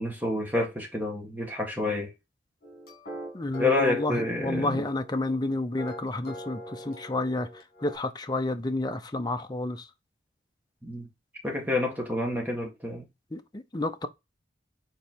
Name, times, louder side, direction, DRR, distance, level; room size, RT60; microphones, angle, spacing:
voice 1, 0.0-2.1 3.6-4.8 10.8-11.1 11.4-13.0, left 2 dB, 10° right, 1.6 m, -28 dB
sound 1, 2.6-8.0, equal, 50° left, 2.4 m, -43 dB
voice 2, 3.3-7.5 7.8-9.8 13.3-14.1, left 2 dB, 20° left, 0.5 m, -30 dB
5.3 x 4.1 x 4.4 m
head